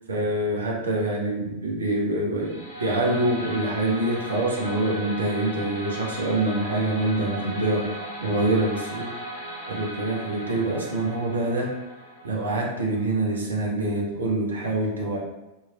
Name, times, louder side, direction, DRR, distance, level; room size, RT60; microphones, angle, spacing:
voice 1, 0.1-7.9 8.2-9.1 9.7-11.7 12.2-15.2, right 2 dB, 70° right, -3 dB, 0.7 m, -25 dB
sound 1, 2.4-13.4, right 1 dB, 75° left, 0.6 m, -37 dB
2.9 x 2.8 x 2.4 m, 1.0 s
figure-of-eight pair, 90°, 0 cm